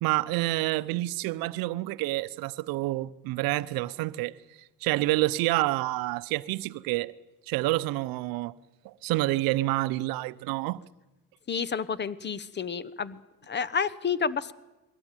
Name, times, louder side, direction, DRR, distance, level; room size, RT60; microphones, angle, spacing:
voice 1, 0.0-4.4 4.8-7.1 7.5-8.5 8.8-10.8, right 18 dB, 85° right, 0.7 m, -28 dB
voice 2, 11.5-13.2 13.5-14.5, left 6 dB, 30° left, 0.9 m, -30 dB
21.5 x 17.0 x 9.1 m
cardioid pair, 100°, 34 cm